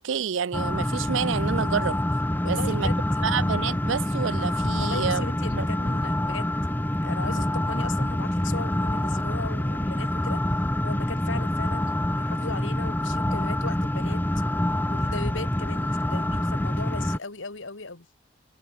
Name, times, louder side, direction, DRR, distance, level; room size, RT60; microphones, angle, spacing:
voice 1, 0.0-2.0 2.5-2.9 3.2-5.3 5.6-5.7, right 6 dB, 75° right, 0.5 m, -28 dB
sound 1, 0.5-17.2, left 1 dB, 10° left, 0.7 m, -26 dB
voice 2, 2.4-3.2 4.8-6.6 7.0-10.4 10.8-14.2 14.9-18.1, left 3 dB, 75° left, 2.1 m, -37 dB
head